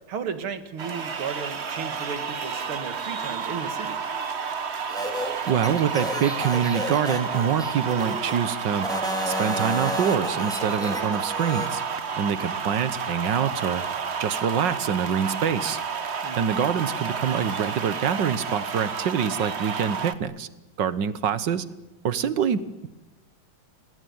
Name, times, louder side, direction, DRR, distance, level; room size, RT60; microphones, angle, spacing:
voice 1, 0.1-4.0 16.2-16.6, right 6 dB, 80° right, 10 dB, 2.7 m, -34 dB
sound 1, 0.8-20.1, right 6 dB, 40° right, 1.2 m, -31 dB
sound 2, 4.9-8.4 8.8-11.7, equal, ahead, 3.5 m, -31 dB
voice 2, 5.5-8.9 9.3-11.8 12.2-13.8 14.2-15.8 16.4-20.5 20.8-21.7 22.0-22.9, right 8 dB, 60° right, 15 dB, 1.7 m, -25 dB
28.0 x 19.0 x 9.5 m, 0.97 s
omnidirectional pair, 2.3 m